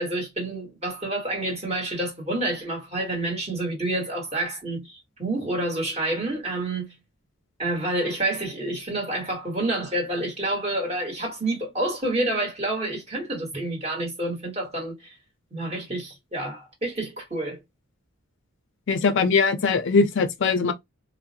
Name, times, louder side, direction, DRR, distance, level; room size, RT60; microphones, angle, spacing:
voice 1, 0.0-6.9 7.6-15.2 15.5-17.6, right 2 dB, 30° right, 1.2 m, -28 dB
voice 2, 18.9-20.7, left 4 dB, 55° left, 0.4 m, -21 dB
2.3 x 2.0 x 2.7 m
head